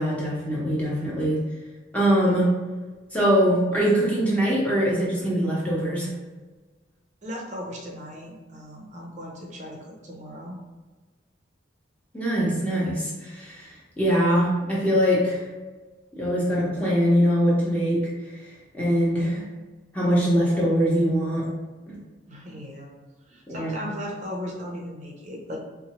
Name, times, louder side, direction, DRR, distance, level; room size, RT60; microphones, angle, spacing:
voice 1, 0.0-1.4 1.9-2.5 3.1-6.1 12.1-15.4 16.1-18.1 18.7-19.4 19.9-21.5 21.9-22.0 23.5-23.7, equal, 5° left, -6 dB, 0.8 m, -22 dB
voice 2, 7.2-10.6 22.3-22.9 23.3-25.6, equal, 40° right, -1 dB, 0.6 m, -37 dB
4.1 x 2.2 x 2.9 m, 1.3 s
head